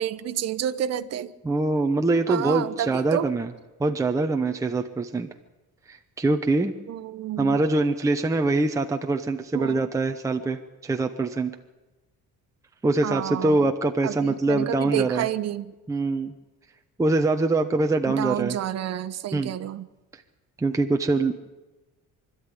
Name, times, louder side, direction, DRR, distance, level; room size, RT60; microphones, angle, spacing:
voice 1, 0.0-1.3 2.3-3.3 6.9-7.6 9.5-9.9 13.0-13.7 14.0-15.7 18.1-19.9, right 11 dB, 50° right, 11 dB, 1.0 m, -30 dB
voice 2, 1.4-3.5 3.8-5.3 5.9-6.7 7.4-11.5 12.8-15.3 15.9-16.3 17.0-18.6 19.3-19.5 20.6-21.3, right 3 dB, 10° right, 4 dB, 0.8 m, -24 dB
25.0 x 13.0 x 9.8 m, 1.1 s
cardioid pair, 175°, 33 cm